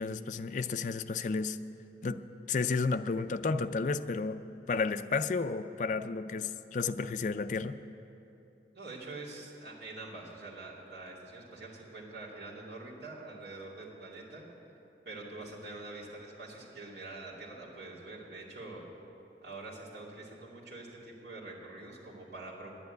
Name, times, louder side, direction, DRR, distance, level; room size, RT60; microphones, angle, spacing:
voice 1, 0.0-1.6 2.0-2.2 2.5-7.8, left 4 dB, 45° left, 10 dB, 0.4 m, -32 dB
voice 2, 8.7-14.5 15.0-18.9 19.4-22.7, right 2 dB, 70° right, -5 dB, 2.6 m, -45 dB
10.5 x 9.1 x 9.3 m, 2.9 s
head